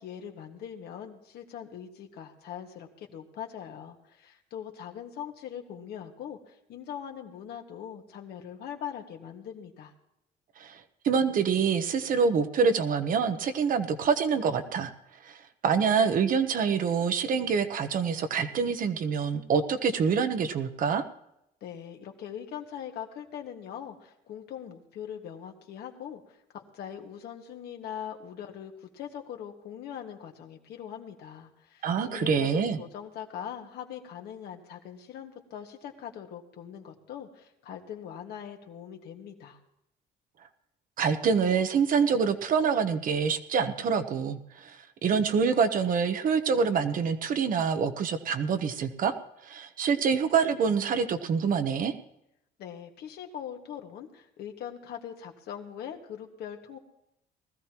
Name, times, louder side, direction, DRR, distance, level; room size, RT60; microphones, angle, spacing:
voice 1, 0.0-9.9 21.6-39.6 52.6-56.8, left 9 dB, 70° left, 3 dB, 1.8 m, -41 dB
voice 2, 10.6-14.9 15.2-21.0 31.8-32.8 41.0-49.1 49.4-51.9, right 6 dB, 55° right, 9 dB, 1.1 m, -26 dB
20.0 x 14.0 x 3.0 m, 0.82 s
cardioid pair, 110°, 17 cm